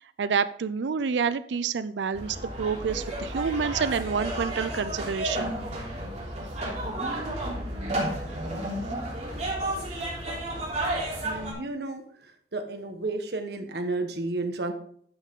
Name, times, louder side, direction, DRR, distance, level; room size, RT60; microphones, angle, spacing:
voice 1, 0.2-5.5, right 6 dB, 85° right, 14 dB, 0.4 m, -28 dB
sound 1, 2.1-11.5, right 1 dB, 40° right, 3.3 m, -32 dB
voice 2, 11.2-12.0 12.5-14.7, right 2 dB, 65° right, 6 dB, 1.4 m, -32 dB
11.5 x 6.5 x 3.7 m, 0.63 s
head